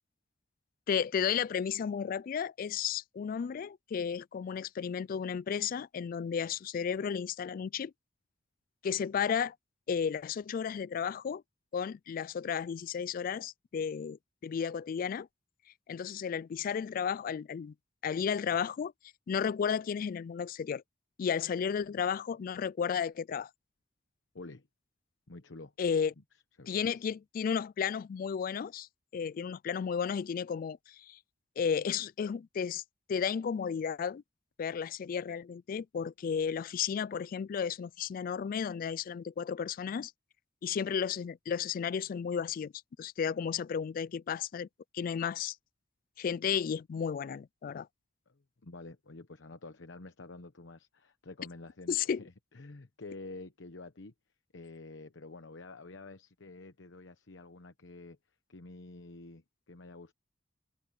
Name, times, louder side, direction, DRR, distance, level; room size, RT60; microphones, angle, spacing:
voice 1, 0.9-7.9 8.8-9.5 9.9-11.4 11.7-14.2 14.4-15.3 15.9-17.7 18.0-18.9 19.3-20.8 21.2-23.5 25.8-26.1 26.7-28.9 29.1-30.8 31.1-31.2 31.6-32.8 33.1-34.2 34.6-40.1 40.6-42.7 43.0-44.7 44.9-45.6 46.2-47.9 51.9-52.2, left 7 dB, 50° left, 0.3 m, -33 dB
voice 2, 24.3-24.7 25.3-25.7 26.6-27.1 48.3-54.1 54.5-58.2 58.5-60.1, left 2 dB, 80° left, 1.0 m, -49 dB
head